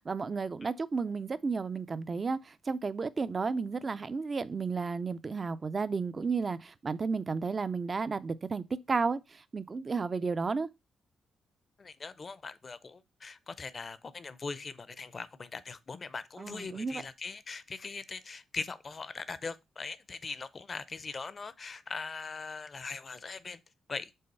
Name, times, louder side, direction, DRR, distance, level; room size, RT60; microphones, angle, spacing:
voice 1, 0.1-10.7 16.4-17.0, right 4 dB, 35° right, 0.4 m, -33 dB
voice 2, 11.8-23.6 23.9-24.1, left 4 dB, 40° left, 0.6 m, -41 dB
5.5 x 3.8 x 5.3 m
cardioid pair, 90°, 0 cm